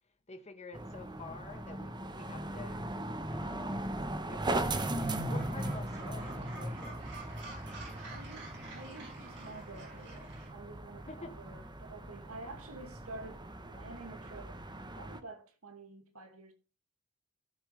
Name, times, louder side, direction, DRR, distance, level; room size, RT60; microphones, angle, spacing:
voice 1, 0.3-2.8 3.3-3.9 4.2-7.0 11.1-11.4 12.3-12.4, left 3 dB, 30° left, 1.3 m, -49 dB
sound 1, 0.7-15.2, right 1 dB, 20° right, 0.9 m, -39 dB
Gull seagull, 4.6-10.5, right 3 dB, 55° right, 5.5 m, -50 dB
voice 2, 8.0-16.5, right 2 dB, 80° right, 2.3 m, -49 dB
16.5 x 6.9 x 3.4 m
head